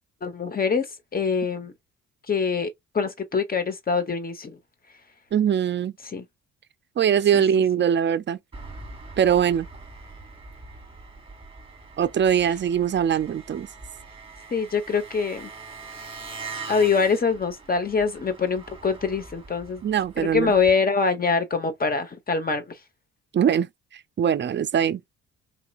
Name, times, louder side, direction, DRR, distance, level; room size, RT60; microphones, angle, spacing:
voice 1, 0.2-0.9 1.1-1.7 2.3-4.5 6.0-6.2 7.3-7.4 14.5-15.5 16.7-19.8 20.2-22.8, left 5 dB, 30° left, 1.1 m, -24 dB
voice 2, 5.3-5.9 7.0-8.4 9.2-9.7 12.0-13.7 19.8-20.5 23.3-23.7 24.2-25.1, right 8 dB, 40° right, 0.5 m, -22 dB
Engine, 8.5-20.7, right 4 dB, 15° right, 1.3 m, -42 dB
4.3 x 2.8 x 2.4 m
cardioid pair, 90°, 30 cm